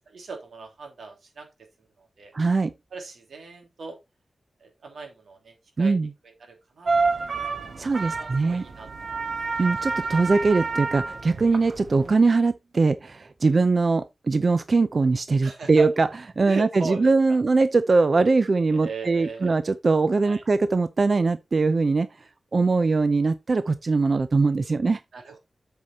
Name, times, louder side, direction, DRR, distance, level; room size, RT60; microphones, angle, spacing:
voice 1, 0.1-1.5 2.0-2.3 2.9-4.0 4.6-5.9 6.2-9.2 9.6-9.7 13.4-13.5 15.4-15.9 16.4-17.4 18.7-19.5 20.2-20.4 22.6-22.8 25.1-25.4, right 4 dB, 90° right, 3.2 m, -39 dB
voice 2, 2.3-2.7 5.8-6.1 7.8-8.6 9.6-16.1 16.4-22.1 22.5-25.0, right 3 dB, 40° right, 0.5 m, -21 dB
sound 1, 6.8-12.1, right 4 dB, 55° right, 1.2 m, -29 dB
8.0 x 5.5 x 4.2 m
wide cardioid pair, 155°, 0 cm